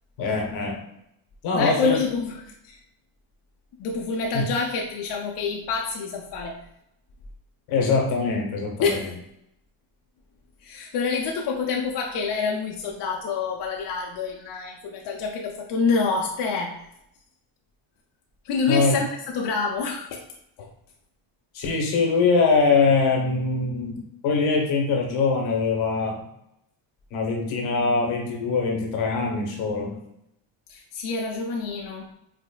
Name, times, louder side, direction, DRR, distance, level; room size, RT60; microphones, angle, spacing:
voice 1, 0.2-0.8 1.4-2.0 4.3-4.4 7.7-9.1 18.7-19.0 21.5-26.3 27.1-30.0, left 4 dB, 80° left, 1 dB, 1.0 m, -23 dB
voice 2, 1.5-2.8 3.8-6.6 8.8-9.1 10.6-16.8 18.4-19.0 19.3-20.2 20.6-20.7 30.7-32.0, left 4 dB, 55° left, 0 dB, 0.6 m, -27 dB
5.0 x 2.0 x 2.2 m, 0.78 s
cardioid pair, 90°, 48 cm